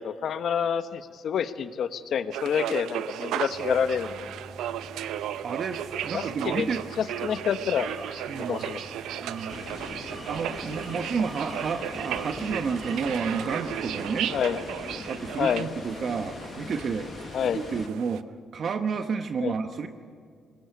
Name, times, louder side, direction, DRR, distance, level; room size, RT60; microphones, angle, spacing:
voice 1, 0.0-4.3 6.1-6.7 7.0-7.9 8.3-8.8 14.3-14.6 15.4-15.7 17.3-17.6 19.4-19.5, left 7 dB, 65° left, 10 dB, 1.1 m, -28 dB
sound 1, 2.3-18.2, right 11 dB, 85° right, 0.7 m, -35 dB
sound 2, 3.5-13.5, right 2 dB, 40° right, 3.4 m, -45 dB
voice 2, 5.4-6.8 8.3-8.7 9.2-9.6 10.2-14.3 15.1-17.1 17.4-18.2 18.5-19.9, right 5 dB, 55° right, 7 dB, 1.1 m, -31 dB
sound 3, 9.5-17.9, left 4 dB, 40° left, 0.8 m, -41 dB
20.0 x 20.0 x 8.3 m, 2.2 s
cardioid pair, 90°, 0 cm